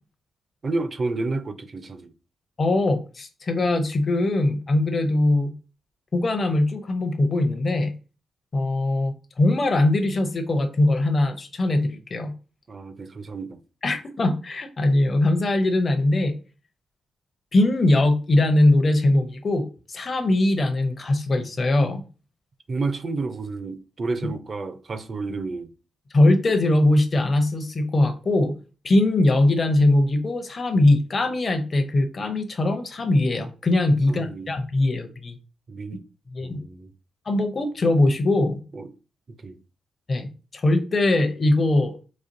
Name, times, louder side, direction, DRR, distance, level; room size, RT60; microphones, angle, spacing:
voice 1, 0.6-2.1 12.7-13.6 22.7-25.7 34.1-34.5 35.7-36.1 36.4-36.9 38.7-38.9 39.3-39.6, right 3 dB, 50° right, 0.5 m, -30 dB
voice 2, 2.6-5.5 6.1-7.9 8.5-12.3 13.8-16.4 17.5-22.0 26.1-28.5 28.8-35.4 36.3-36.6 37.3-38.6 40.1-42.0, left 2 dB, 45° left, 0.6 m, -21 dB
4.1 x 2.4 x 2.6 m
hypercardioid pair, 45°, 0 cm